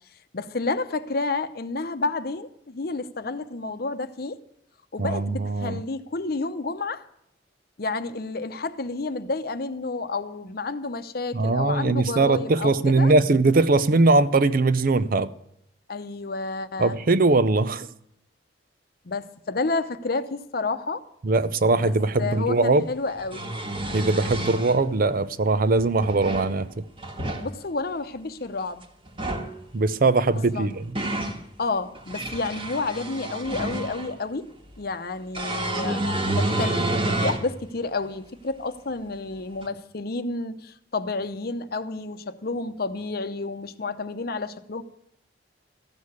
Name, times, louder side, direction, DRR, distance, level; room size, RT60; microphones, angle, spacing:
voice 1, 0.3-4.4 4.9-7.0 7.8-13.1 15.9-17.0 19.0-21.0 21.8-21.9 22.2-23.6 27.4-28.8 30.5-30.8 31.6-34.5 34.8-36.1 36.3-44.8, left 3 dB, 55° left, 0.8 m, -30 dB
voice 2, 5.0-5.8 11.3-15.3 16.8-17.9 21.2-22.9 23.9-26.8 29.7-31.0, right 3 dB, 50° right, 0.6 m, -21 dB
sound 1, 22.1-22.2 23.1-24.8 25.8-26.5 27.0-27.5 29.1-29.5 30.5-31.4 32.0-34.1 35.3-37.5 38.0-38.1 39.6-39.7, right 1 dB, 30° right, 1.6 m, -29 dB
14.5 x 6.7 x 9.6 m
head